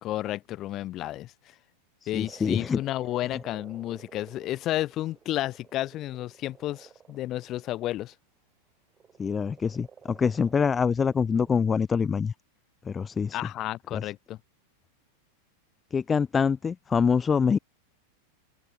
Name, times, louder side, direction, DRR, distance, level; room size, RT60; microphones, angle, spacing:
voice 1, 0.0-1.3 2.1-8.1 13.3-14.4, left 15 dB, 35° left, 1.3 m, -32 dB
voice 2, 2.1-2.8 9.2-12.3 12.9-13.4 13.9-14.0 15.9-17.6, left 6 dB, 20° left, 0.8 m, -25 dB
Frog, 2.2-8.1 9.0-11.5, right 7 dB, 20° right, 4.6 m, -53 dB
open air
figure-of-eight pair, 90°, 0 cm